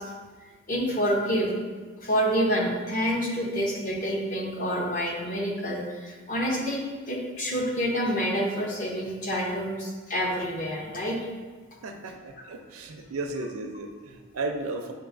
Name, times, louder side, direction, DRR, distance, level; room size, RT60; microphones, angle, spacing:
voice 1, 0.7-1.5 2.0-11.2, equal, 40° left, -2 dB, 0.8 m, -28 dB
voice 2, 11.8-14.9, right 2 dB, 75° right, 5 dB, 0.5 m, -34 dB
7.7 x 2.6 x 2.5 m, 1.4 s
head